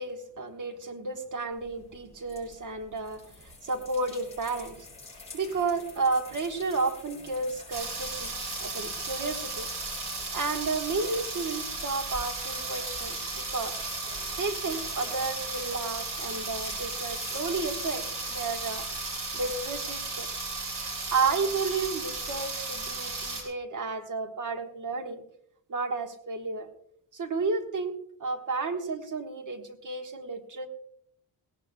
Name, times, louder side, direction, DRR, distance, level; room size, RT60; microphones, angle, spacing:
voice 1, 0.0-4.8 5.3-8.3 8.6-9.7 10.3-13.7 14.4-18.9 19.3-20.3 20.8-25.2 25.7-26.7 27.1-27.9 28.2-30.7, right 4 dB, 45° right, 5 dB, 1.4 m, -32 dB
sound 1, 1.5-19.6, left 3 dB, 15° left, 6.6 m, -47 dB
sound 2, 7.7-23.4, right 3 dB, 65° right, 3.8 m, -35 dB
19.0 x 17.0 x 2.2 m, 0.68 s
wide cardioid pair, 170°, 41 cm